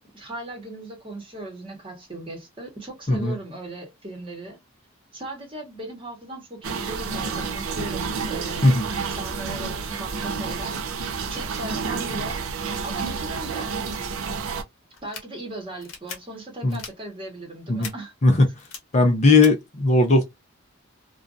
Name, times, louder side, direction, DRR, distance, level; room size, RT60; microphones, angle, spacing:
voice 1, 0.0-4.6 5.1-8.8 9.0-12.4 12.8-13.7 15.0-18.1, right 2 dB, 25° right, 1.0 m, -38 dB
sound 1, 6.6-14.6, right 5 dB, 80° right, 0.5 m, -30 dB
sound 2, 14.9-15.2 15.8-16.2 16.7-16.9 17.8-17.9 18.6-18.8 19.4-19.5, left 6 dB, 65° left, 0.8 m, -37 dB
voice 2, 18.9-20.2, left 3 dB, 30° left, 0.5 m, -18 dB
2.5 x 2.2 x 2.4 m
head